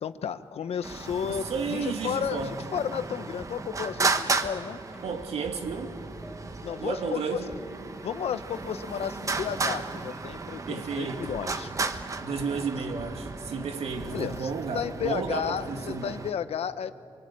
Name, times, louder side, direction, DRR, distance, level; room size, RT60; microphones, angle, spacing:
voice 1, 0.0-4.8 6.6-7.4 8.0-11.7 14.1-16.9, left 8 dB, 80° left, 1.0 m, -33 dB
sound 1, 0.6-15.8, equal, 5° right, 1.8 m, -50 dB
Traffic noise roadway noise, 0.8-16.3, right 3 dB, 30° right, 1.1 m, -34 dB
voice 2, 1.2-2.6 5.0-6.0 6.8-7.5 10.7-11.4 12.2-16.0, right 5 dB, 85° right, 2.3 m, -32 dB
28.5 x 24.0 x 8.7 m
wide cardioid pair, 155°, 10 cm